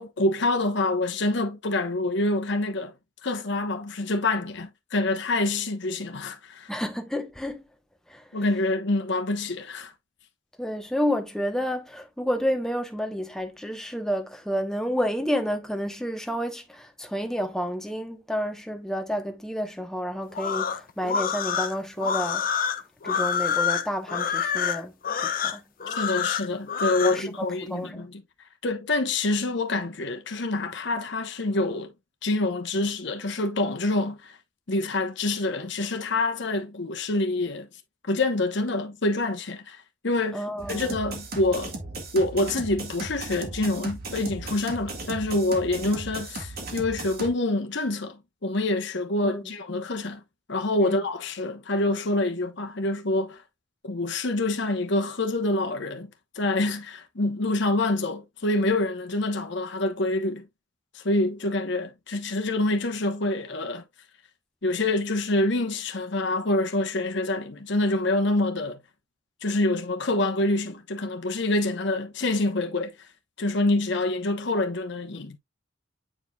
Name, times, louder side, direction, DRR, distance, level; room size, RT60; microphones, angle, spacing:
voice 1, 0.0-2.9 3.2-6.7 8.3-9.9 25.9-28.2 28.6-31.9 32.2-34.4 34.7-37.7 38.1-40.4 40.7-41.7 42.1-50.2 50.5-53.4 53.8-56.1 56.3-60.4 60.9-63.8 64.6-68.8 69.4-72.9 73.4-75.4, left 2 dB, 60° left, 1.1 m, -26 dB
voice 2, 6.7-7.6 8.1-8.2 10.6-22.5 23.0-24.9 25.2-25.6 27.0-28.1 40.3-40.9 49.2-49.5 50.8-51.0, equal, 5° left, 1.0 m, -30 dB
sound 1, 20.3-27.2, left 7 dB, 45° left, 0.7 m, -27 dB
sound 2, 40.6-47.3, right 2 dB, 50° right, 1.7 m, -36 dB
8.7 x 4.8 x 2.3 m
head